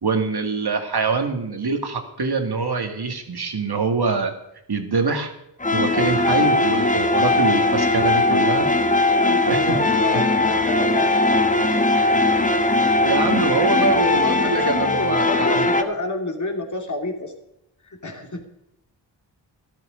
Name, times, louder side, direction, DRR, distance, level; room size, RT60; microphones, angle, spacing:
voice 1, 0.0-4.3 4.7-5.3 5.7-8.7 9.5-9.8 10.1-10.3 13.0-15.2 15.5-15.6, right 4 dB, 55° right, 5 dB, 2.2 m, -24 dB
sound 1, 5.6-15.8, left 2 dB, 15° left, 1.3 m, -19 dB
voice 2, 8.9-11.9 14.2-17.3 17.8-18.4, left 2 dB, 40° left, 2 dB, 2.8 m, -30 dB
13.0 x 12.0 x 5.2 m, 0.84 s
cardioid pair, 50°, 45 cm